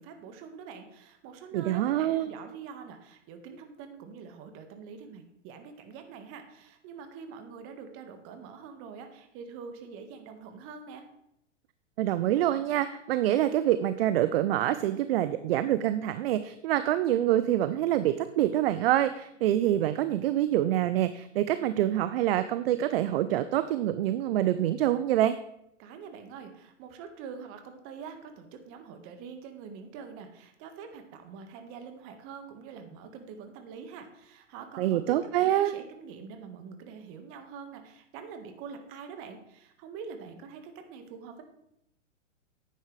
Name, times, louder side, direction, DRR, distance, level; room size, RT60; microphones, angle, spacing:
voice 1, 0.0-11.1 25.8-41.4, right 6 dB, 35° right, 6 dB, 1.6 m, -45 dB
voice 2, 1.5-2.3 12.0-25.3 34.8-35.7, right 12 dB, 50° right, 12 dB, 0.6 m, -26 dB
11.0 x 9.5 x 3.3 m, 0.78 s
hypercardioid pair, 120°, 37 cm